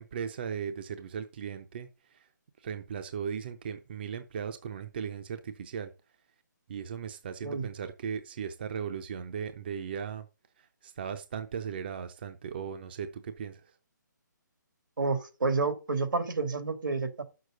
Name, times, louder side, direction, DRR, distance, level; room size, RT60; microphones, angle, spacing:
voice 1, 0.0-2.3 2.6-5.9 6.7-10.3 10.8-13.6, right 7 dB, 30° right, 0.6 m, -37 dB
voice 2, 15.0-17.2, right 4 dB, 85° right, 2.3 m, -29 dB
7.4 x 6.6 x 5.1 m
hypercardioid pair, 170°, 10 cm